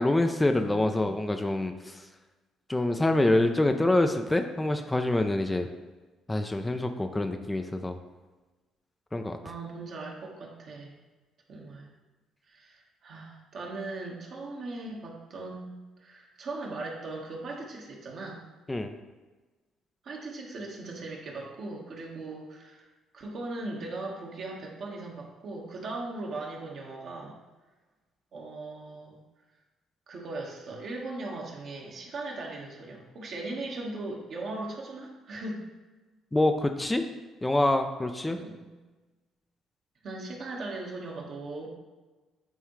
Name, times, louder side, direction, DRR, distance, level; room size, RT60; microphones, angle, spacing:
voice 1, 0.0-2.0 2.7-5.7 6.3-8.0 9.1-9.4 18.7-18.9 36.3-37.0 37.4-38.4, left 2 dB, 15° left, 6 dB, 0.5 m, -26 dB
voice 2, 0.5-1.1 9.4-11.0 11.5-11.9 12.5-15.7 16.0-18.4 20.0-22.9 23.1-27.4 28.3-29.2 30.1-35.6 38.3-38.6 40.0-41.7, right 2 dB, 60° right, -1 dB, 1.5 m, -39 dB
9.0 x 3.6 x 3.2 m, 1.2 s
supercardioid pair, 60°, 0 cm